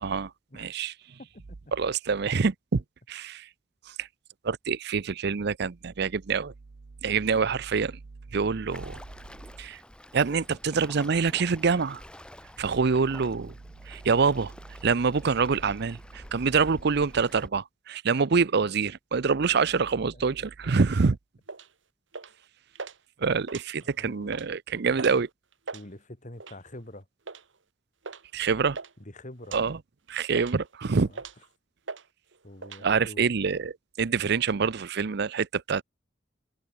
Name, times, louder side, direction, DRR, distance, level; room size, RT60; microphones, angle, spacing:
voice 1, 0.0-1.2 1.7-3.5 3.9-4.1 4.4-6.5 7.0-8.0 8.3-9.0 9.6-9.8 10.1-12.0 12.6-13.5 13.9-21.2 23.2-25.3 28.3-28.8 29.5-29.8 30.1-31.1 32.8-35.8, right 5 dB, 60° right, 0.6 m, -26 dB
Waves surf, 8.7-17.5, equal, 5° left, 1.2 m, -47 dB
sound 1, 21.5-21.7 22.1-22.4 22.7-23.0 23.4-23.9 24.2-24.5 25.0-25.2 25.5-25.8 26.4-26.7 27.3-27.5 28.0-28.2 28.5-28.9 29.4-29.6 30.1-30.7 31.1-31.5 31.9-32.1 32.3-32.8, right 4 dB, 75° right, 1.8 m, -40 dB
voice 2, 23.8-24.5 25.7-27.1 29.0-29.6 31.1-31.2 32.4-33.3, left 1 dB, 40° left, 3.3 m, -45 dB
head